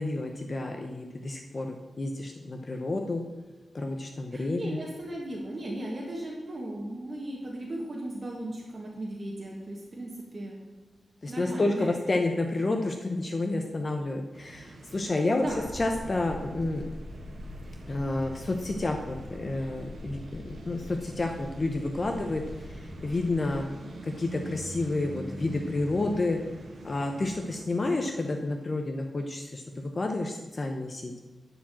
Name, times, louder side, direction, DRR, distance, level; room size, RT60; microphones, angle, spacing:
voice 1, 0.0-3.2 3.7-4.8 11.2-15.4 15.7-16.8 17.9-22.4 22.8-23.7 24.0-26.4 26.8-31.1, left 2 dB, 35° left, 4 dB, 0.8 m, -30 dB
voice 2, 4.3-10.5 11.3-11.9 15.3-15.6, right 1 dB, 35° right, -3 dB, 1.6 m, -37 dB
sound 1, 14.3-27.7, right 1 dB, 70° right, 1.9 m, -46 dB
sound 2, 15.5-23.6, left 1 dB, 50° left, 1.7 m, -43 dB
11.0 x 5.0 x 7.6 m, 1.3 s
wide cardioid pair, 150°, 0 cm